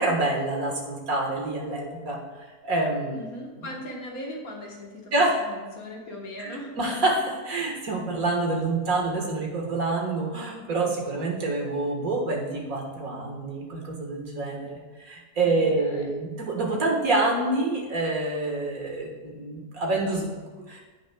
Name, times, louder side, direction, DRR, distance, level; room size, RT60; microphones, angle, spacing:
voice 1, 0.0-2.2 2.6-3.2 3.6-3.7 5.1-5.4 6.4-20.8, right 2 dB, 60° right, -1 dB, 1.9 m, -27 dB
voice 2, 3.1-5.1 5.4-6.7 15.4-16.2, left 1 dB, 60° left, -1 dB, 1.7 m, -39 dB
15.0 x 6.1 x 2.3 m, 1.3 s
omnidirectional pair, 1.8 m